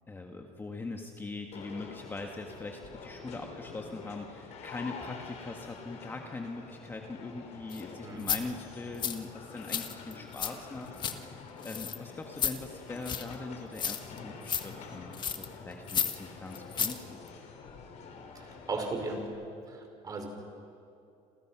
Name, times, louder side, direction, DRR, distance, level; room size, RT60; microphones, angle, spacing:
voice 1, 0.1-17.2, left 3 dB, 15° left, 3 dB, 1.6 m, -42 dB
sound 1, 1.5-19.3, left 4 dB, 55° left, 4.1 m, -47 dB
sound 2, 7.7-7.8 8.2-8.4 9.0-9.2 9.6-10.5 10.8-11.2 11.6-12.0 12.4-12.6 13.0-13.3 13.8-14.2 14.5-14.6 15.1-15.5 15.9-16.2 16.5-17.0 17.3-17.4, left 7 dB, 35° left, 1.5 m, -32 dB
voice 2, 18.3-19.2 19.7-20.3, right 3 dB, 30° right, 3 dB, 5.0 m, -36 dB
29.0 x 27.5 x 6.1 m, 2.7 s
cardioid pair, 150°, 14 cm